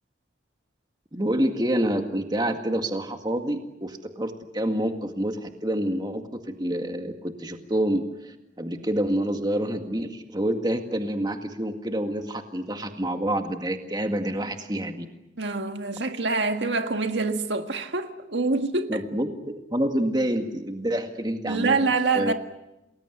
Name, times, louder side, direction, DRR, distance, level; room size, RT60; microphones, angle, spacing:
voice 1, 1.1-15.1 18.9-21.8 22.2-22.3, right 1 dB, 20° right, 2.0 m, -27 dB
voice 2, 15.4-19.0 21.5-22.3, right 3 dB, 70° right, 1.8 m, -25 dB
29.0 x 20.5 x 8.1 m
head